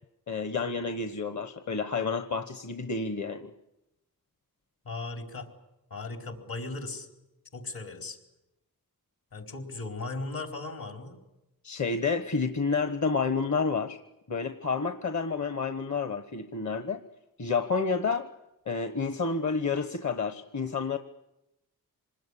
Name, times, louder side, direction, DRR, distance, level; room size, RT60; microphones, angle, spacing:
voice 1, 0.3-3.5 11.6-14.0 14.3-17.0 17.4-18.3 18.7-21.0, left 4 dB, 50° left, 8 dB, 1.2 m, -29 dB
voice 2, 4.8-5.5 5.9-7.1 7.5-8.2 9.3-11.2, left 3 dB, 75° left, 4 dB, 4.5 m, -37 dB
26.0 x 20.0 x 10.0 m, 0.93 s
cardioid pair, 80°, 36 cm